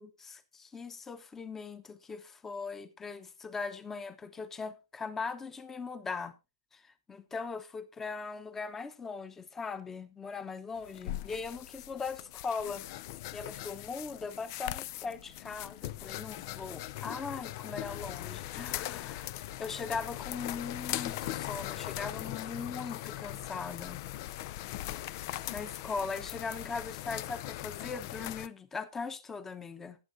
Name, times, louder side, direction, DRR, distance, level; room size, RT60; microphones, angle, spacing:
voice 1, 0.0-6.3 6.7-12.8 13.3-19.3 19.6-24.0 25.0-30.0, left 5 dB, 15° left, 1.0 m, -40 dB
sound 1, 10.8-28.5, left 15 dB, 45° left, 0.5 m, -40 dB
19.0 x 8.2 x 2.7 m
hypercardioid pair, 140°, 3 cm